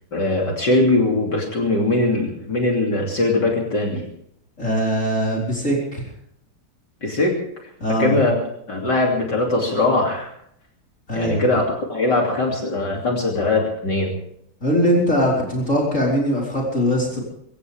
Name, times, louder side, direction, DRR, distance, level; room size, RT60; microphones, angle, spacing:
voice 1, 0.1-4.1 7.0-7.4 8.0-8.4 8.7-10.3 11.1-14.1, left 2 dB, 50° left, 0 dB, 3.5 m, -21 dB
voice 2, 4.6-6.0 7.8-8.2 11.1-11.5 14.6-17.2, equal, 35° left, -3 dB, 4.8 m, -21 dB
25.0 x 15.5 x 3.5 m, 0.72 s
omnidirectional pair, 2.4 m